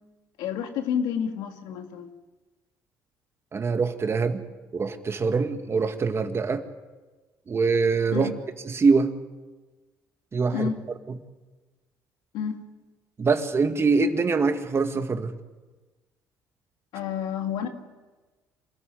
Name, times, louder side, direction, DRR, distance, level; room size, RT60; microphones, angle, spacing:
voice 1, 0.4-2.1 8.1-8.3 10.5-10.8 12.3-12.6 16.9-17.7, left 8 dB, 85° left, 5 dB, 2.2 m, -29 dB
voice 2, 3.5-4.4 4.7-6.6 7.5-8.3 8.7-9.1 10.3-10.7 13.2-15.3, right 4 dB, 35° right, 7 dB, 2.0 m, -24 dB
26.5 x 14.0 x 9.3 m, 1.2 s
supercardioid pair, 80°, 7 cm